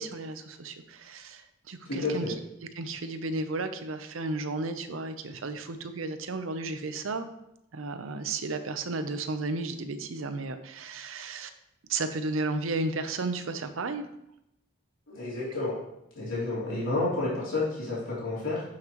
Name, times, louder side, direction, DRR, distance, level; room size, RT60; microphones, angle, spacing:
voice 1, 0.0-2.3 2.7-7.3 7.7-11.5 11.9-14.1, right 3 dB, 90° right, 9 dB, 0.7 m, -33 dB
voice 2, 1.8-2.3 15.1-15.8 16.1-18.6, left 2 dB, 85° left, -9 dB, 3.1 m, -30 dB
11.0 x 5.8 x 3.0 m, 0.82 s
head